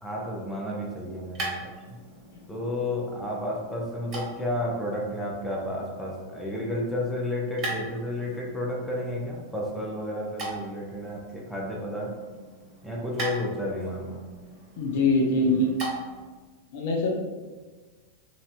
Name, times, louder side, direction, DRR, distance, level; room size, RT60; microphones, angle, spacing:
voice 1, 0.0-2.0 2.5-12.2 12.8-14.2, left 1 dB, ahead, -4 dB, 0.6 m, -32 dB
sound 1, 0.7-16.3, right 2 dB, 35° right, 1.1 m, -41 dB
voice 2, 14.8-15.7 16.7-17.1, left 2 dB, 50° left, -1 dB, 0.5 m, -23 dB
3.1 x 2.5 x 2.4 m, 1.4 s
figure-of-eight pair, 90°, 0 cm